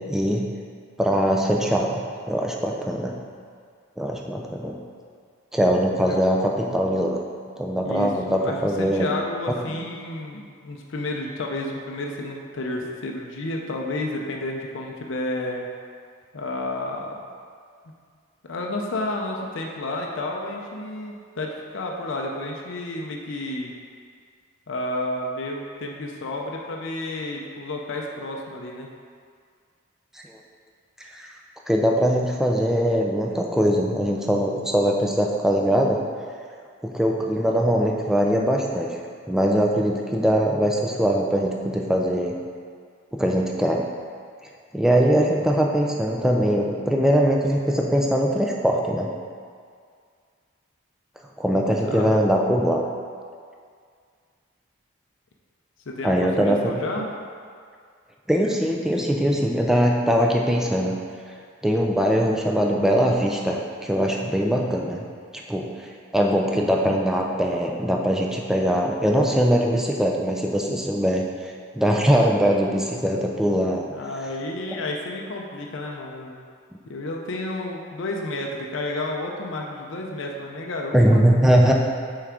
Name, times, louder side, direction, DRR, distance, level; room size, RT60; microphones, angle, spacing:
voice 1, 0.1-0.5 1.0-2.0 2.3-3.1 4.0-4.8 5.5-7.2 7.6-9.1 30.1-30.2 31.0-31.3 31.7-36.0 36.8-39.0 39.3-42.4 43.1-43.8 44.7-49.1 51.4-52.8 56.0-56.7 58.3-60.9 61.3-61.4 61.6-65.0 65.5-73.9 80.9-81.7, equal, ahead, 0 dB, 0.4 m, -21 dB
voice 2, 7.8-15.7 16.3-17.2 18.4-23.7 24.7-28.9 51.7-52.1 55.9-57.1 73.9-76.4 76.9-81.2, left 2 dB, 60° left, 0 dB, 0.5 m, -31 dB
5.7 x 4.7 x 3.6 m, 2.1 s
head